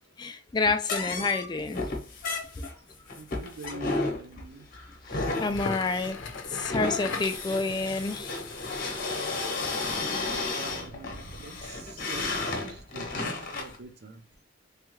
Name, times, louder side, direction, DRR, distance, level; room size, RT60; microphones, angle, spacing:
voice 1, 0.2-1.8 2.6-2.7 5.1-6.2 6.5-8.4, left 3 dB, 25° left, 0.3 m, -29 dB
sound 1, 0.8-13.8, left 3 dB, 50° left, 0.8 m, -33 dB
voice 2, 3.1-4.6 9.8-14.2, right 2 dB, 60° right, 0.6 m, -45 dB
Crackle, 5.5-10.7, left 4 dB, 75° left, 0.6 m, -41 dB
3.2 x 2.3 x 3.1 m
head